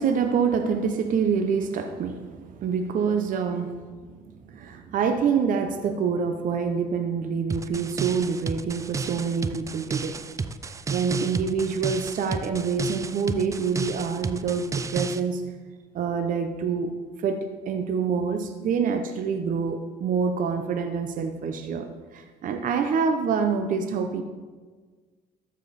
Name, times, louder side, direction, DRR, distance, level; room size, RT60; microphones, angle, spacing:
voice 1, 0.0-4.2 4.5-10.2 10.9-15.4 15.9-16.9 17.2-24.2, right 6 dB, 50° right, 5 dB, 0.7 m, -26 dB
sound 1, 7.5-15.2, right 4 dB, 20° right, 0.3 m, -32 dB
13.0 x 5.3 x 4.1 m, 1.5 s
cardioid pair, 110°, 17 cm